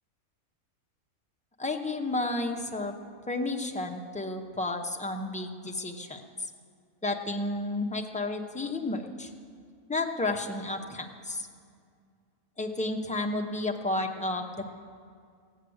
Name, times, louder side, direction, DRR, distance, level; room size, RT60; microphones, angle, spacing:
voice 1, 1.6-3.0 3.3-6.2 7.0-9.3 9.9-11.5 12.6-14.7, left 2 dB, 5° left, 3 dB, 0.7 m, -32 dB
15.5 x 9.1 x 7.9 m, 2.2 s
omnidirectional pair, 1.5 m